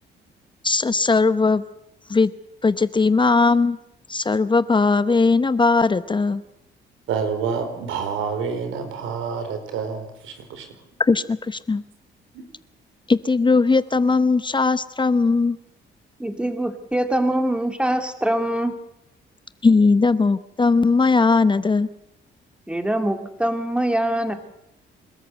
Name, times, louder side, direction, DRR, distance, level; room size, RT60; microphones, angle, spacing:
voice 1, 0.6-1.6 2.1-2.3 2.6-3.8 4.1-6.4 11.1-11.8 13.1-15.6 19.6-21.9, left 4 dB, 25° left, 14 dB, 0.8 m, -19 dB
voice 2, 7.1-10.6 12.3-12.4, right 6 dB, 85° right, 7 dB, 4.2 m, -28 dB
voice 3, 16.2-18.7 22.7-24.3, right 1 dB, 5° right, 7 dB, 2.5 m, -23 dB
27.0 x 13.5 x 8.0 m, 0.85 s
cardioid pair, 90°, 20 cm